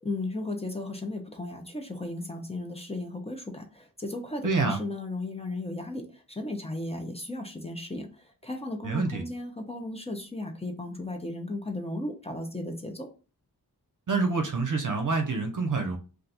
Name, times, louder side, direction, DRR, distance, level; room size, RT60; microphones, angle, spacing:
voice 1, 0.0-13.1, left 2 dB, 15° left, 3 dB, 0.6 m, -35 dB
voice 2, 4.4-4.8 8.8-9.2 14.1-16.0, right 4 dB, 50° right, 4 dB, 0.6 m, -27 dB
2.5 x 2.3 x 4.0 m, 0.34 s
wide cardioid pair, 85°, 39 cm